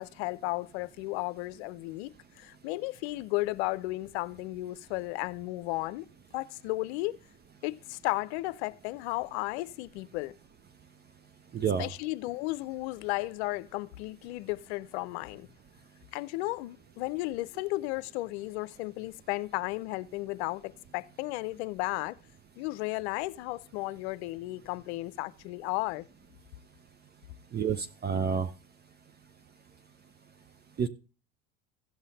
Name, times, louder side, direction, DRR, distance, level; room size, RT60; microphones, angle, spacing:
voice 1, 0.0-6.1 6.3-7.2 7.6-10.3 11.8-15.5 16.1-22.2 22.6-26.1, left 20 dB, 75° left, 0.6 m, -34 dB
voice 2, 11.5-11.9 27.5-28.5 30.8-30.9, right 7 dB, 30° right, 0.7 m, -29 dB
16.0 x 5.6 x 4.0 m
supercardioid pair, 90°, 33 cm